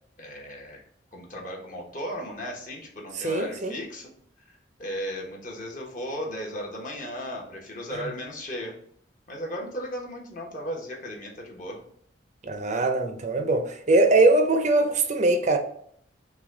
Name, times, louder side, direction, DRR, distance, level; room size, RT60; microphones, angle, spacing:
voice 1, 0.2-0.8 1.1-4.1 4.5-8.7 9.3-11.8, equal, 45° left, 1.1 m, -36 dB
voice 2, 3.1-3.8 7.9-8.1 12.4-15.6, right 2 dB, 40° right, 0.5 m, -22 dB
5.9 x 2.3 x 3.7 m
head